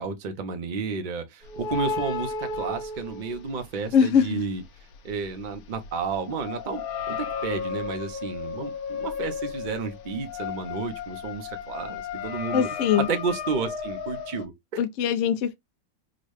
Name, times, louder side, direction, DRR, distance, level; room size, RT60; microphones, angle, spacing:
voice 1, 0.0-4.6 5.0-6.8 7.1-7.2 7.4-12.7 13.0-14.5, right 5 dB, 55° right, 0.5 m, -31 dB
sound 1, 1.4-3.9 4.2-14.5, left 5 dB, 85° left, 1.2 m, -34 dB
voice 2, 3.9-4.4 12.5-13.1 14.8-15.6, left 8 dB, 70° left, 0.8 m, -22 dB
3.8 x 2.1 x 3.1 m
omnidirectional pair, 1.5 m